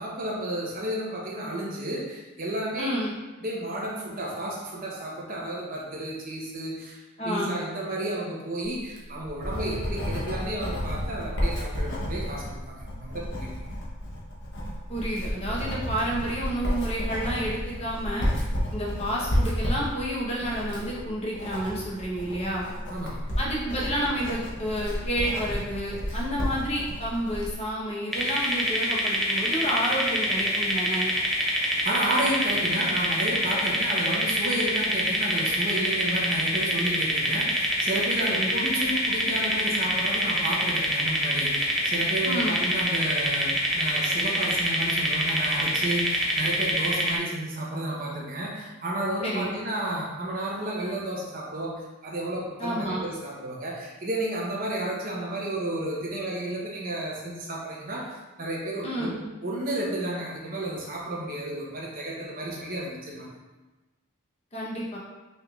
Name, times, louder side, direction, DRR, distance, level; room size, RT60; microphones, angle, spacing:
voice 1, 0.0-3.0 3.4-13.5 22.9-23.2 31.8-51.7 52.0-58.0 58.4-63.3, right 1 dB, 40° right, -3 dB, 0.9 m, -32 dB
voice 2, 2.8-3.1 7.2-7.5 14.9-18.3 18.7-22.6 23.4-31.1 38.2-38.5 42.2-42.6 49.2-49.5 52.6-53.0 58.8-59.2 64.5-65.0, equal, 30° left, -6 dB, 1.0 m, -30 dB
Writing, 8.8-27.6, equal, 55° left, 1.0 m, -31 dB
sound 1, 28.1-47.2, equal, ahead, 0.5 m, -26 dB
5.6 x 3.4 x 2.5 m, 1.1 s
head